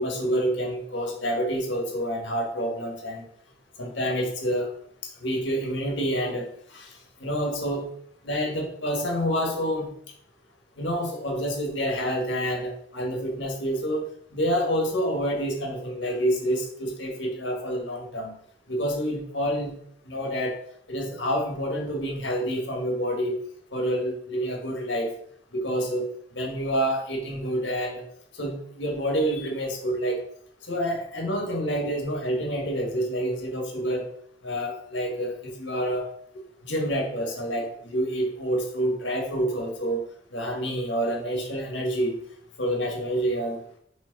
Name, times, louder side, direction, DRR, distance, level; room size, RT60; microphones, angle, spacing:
voice 1, 0.0-3.2 3.8-4.7 5.2-7.9 8.2-9.9 10.8-14.1 14.3-18.4 18.7-19.8 20.1-20.6 20.9-23.4 23.7-25.1 25.5-26.1 26.3-28.0 28.4-30.2 30.7-34.1 34.4-36.1 36.6-40.0 40.3-42.2 42.6-43.6, equal, 75° left, 0 dB, 1.9 m, -28 dB
6.3 x 3.6 x 5.4 m, 0.64 s
head